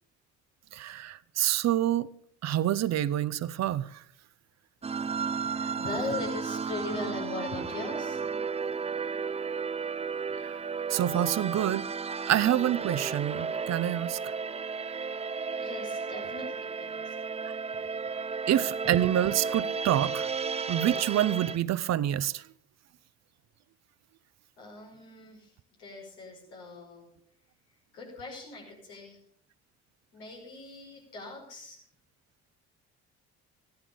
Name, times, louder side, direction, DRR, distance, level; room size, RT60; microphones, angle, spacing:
voice 1, 0.7-2.1 2.4-3.9 10.4-10.6 10.9-11.9 12.3-14.3 18.5-20.3 20.7-22.4, right 12 dB, 55° right, 0.7 m, -27 dB
sound 1, 4.8-21.6, right 5 dB, 20° right, 0.5 m, -33 dB
voice 2, 5.8-8.2 15.6-17.1 24.6-25.5 25.8-27.1 27.9-29.2 30.1-31.8, left 3 dB, 90° left, 5.4 m, -39 dB
14.0 x 12.5 x 5.2 m
hypercardioid pair, 60°, 33 cm